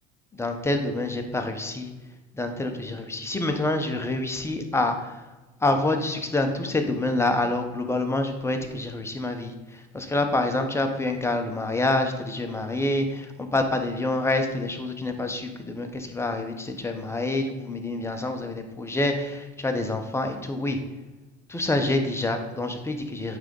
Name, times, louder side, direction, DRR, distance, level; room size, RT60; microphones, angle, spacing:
voice 1, 0.3-1.9 2.3-5.2 5.6-20.8 21.5-23.4, left 2 dB, 10° left, 5 dB, 1.0 m, -27 dB
8.9 x 3.7 x 5.3 m, 1.2 s
supercardioid pair, 100°, 21 cm